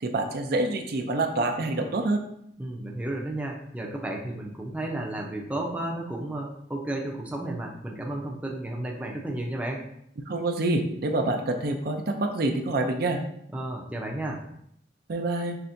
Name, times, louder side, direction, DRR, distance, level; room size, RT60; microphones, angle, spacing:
voice 1, 0.0-2.2 10.3-13.2 15.1-15.6, right 2 dB, 55° right, 4 dB, 0.5 m, -27 dB
voice 2, 2.6-9.8 13.5-14.4, right 1 dB, 10° right, -1 dB, 0.6 m, -33 dB
5.7 x 3.2 x 2.6 m, 0.72 s
head